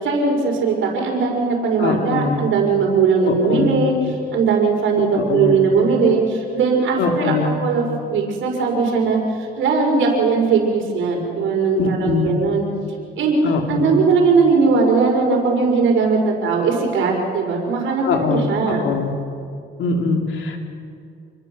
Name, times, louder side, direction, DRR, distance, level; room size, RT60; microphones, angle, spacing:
voice 1, 0.0-3.9 4.3-12.7 13.2-13.4 13.7-18.9, right 4 dB, 80° right, 1 dB, 5.3 m, -19 dB
voice 2, 1.8-2.4 3.2-3.8 5.1-5.7 7.0-7.5 11.7-12.4 13.4-14.0 18.0-19.1 19.8-20.6, left 4 dB, 75° left, 3 dB, 3.3 m, -22 dB
28.0 x 21.5 x 7.0 m, 2.4 s
cardioid pair, 90°, 20 cm